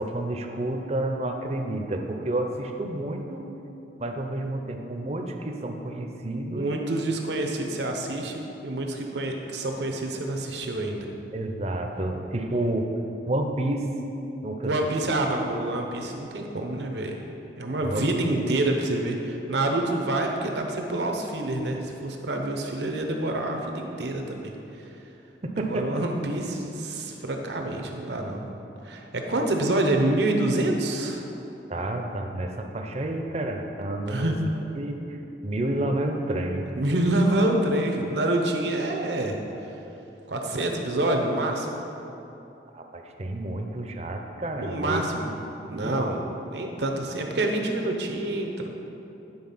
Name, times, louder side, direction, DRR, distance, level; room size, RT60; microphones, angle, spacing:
voice 1, 0.0-3.5 4.0-6.7 11.3-12.9 13.3-13.8 14.4-14.7 17.8-18.0 25.4-26.0 31.7-36.7 42.7-45.0 45.7-46.0, right 1 dB, 35° right, 4 dB, 0.6 m, -30 dB
voice 2, 6.5-11.1 14.6-17.2 17.6-24.9 25.7-28.5 28.8-31.2 34.1-34.4 36.7-39.4 40.3-41.7 44.6-45.3 45.6-48.7, right 1 dB, 75° right, 2 dB, 0.8 m, -27 dB
9.6 x 4.2 x 5.6 m, 3.0 s
head